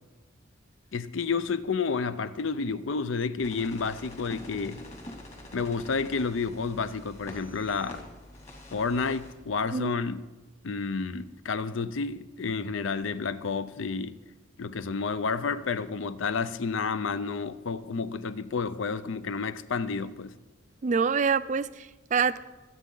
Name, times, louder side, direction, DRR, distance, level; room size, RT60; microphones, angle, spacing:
voice 1, 0.9-4.9 5.5-8.0 8.7-10.2 10.6-14.2 14.6-20.3, left 4 dB, 65° left, 0.5 m, -30 dB
sound 1, 3.4-9.3, left 1 dB, 30° left, 2.3 m, -46 dB
voice 2, 20.8-22.4, right 5 dB, 35° right, 0.3 m, -26 dB
24.5 x 8.4 x 3.8 m
head